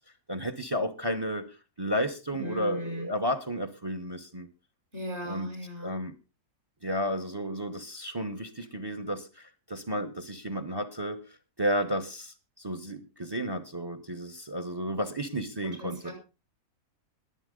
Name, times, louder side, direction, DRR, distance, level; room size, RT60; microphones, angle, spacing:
voice 1, 0.3-1.5 1.8-4.5 5.2-5.5 5.8-6.1 6.8-16.1, equal, 20° right, 11 dB, 0.9 m, -32 dB
voice 2, 2.3-3.1 4.9-6.0 15.8-16.1, left 1 dB, 45° right, 3 dB, 6.3 m, -37 dB
20.5 x 8.1 x 3.8 m, 0.31 s
omnidirectional pair, 1.6 m